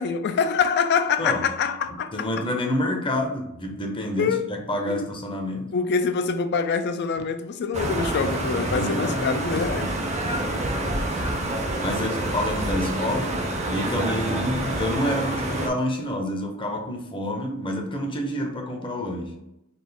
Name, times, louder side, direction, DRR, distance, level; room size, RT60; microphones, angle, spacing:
voice 1, 0.0-2.3 4.2-4.4 4.9-5.1 5.7-9.9, left 5 dB, 50° left, 0.4 m, -25 dB
voice 2, 2.1-5.8 8.7-9.8 10.2-19.4, left 1 dB, 25° left, 0.7 m, -29 dB
sound 1, 7.7-15.7, right 1 dB, 30° right, 0.6 m, -27 dB
4.1 x 2.5 x 3.4 m
head